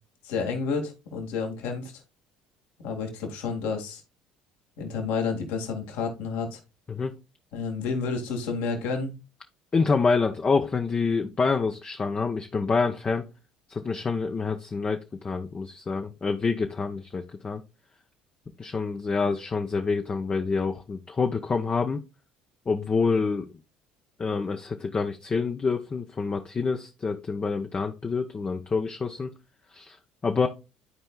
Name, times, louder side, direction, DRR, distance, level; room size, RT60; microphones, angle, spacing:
voice 1, 0.2-2.0 2.8-4.0 4.8-6.6 7.5-9.1, left 5 dB, 70° left, 3 dB, 1.9 m, -30 dB
voice 2, 9.7-13.2 13.7-17.6 18.6-22.0 22.7-23.5 24.2-29.3 29.7-30.0 30.2-30.5, left 4 dB, 30° left, 4 dB, 0.7 m, -27 dB
12.5 x 4.4 x 2.2 m, 0.28 s
hypercardioid pair, 65°, 4 cm